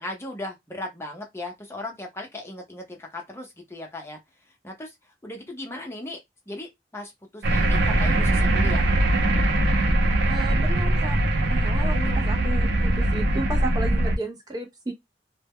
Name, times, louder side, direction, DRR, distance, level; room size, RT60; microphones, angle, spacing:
voice 1, 0.0-4.2 4.6-4.9 5.2-6.2 6.5-8.9 11.8-12.3, left 1 dB, 15° left, 0.6 m, -37 dB
sound 1, 7.4-14.2, right 1 dB, 75° right, 0.5 m, -21 dB
voice 2, 10.3-11.2 11.4-12.0 12.3-14.9, right 2 dB, 20° right, 0.4 m, -33 dB
2.1 x 2.0 x 3.5 m
head